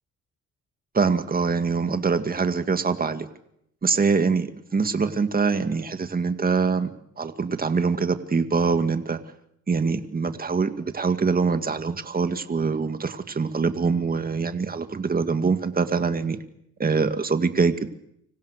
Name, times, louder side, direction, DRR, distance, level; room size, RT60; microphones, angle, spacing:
voice 1, 0.9-3.3 3.8-6.9 7.2-9.2 9.7-16.4 16.8-17.9, right 5 dB, 30° right, 8 dB, 2.1 m, -24 dB
28.5 x 26.0 x 6.6 m, 0.75 s
cardioid pair, 90°, 30 cm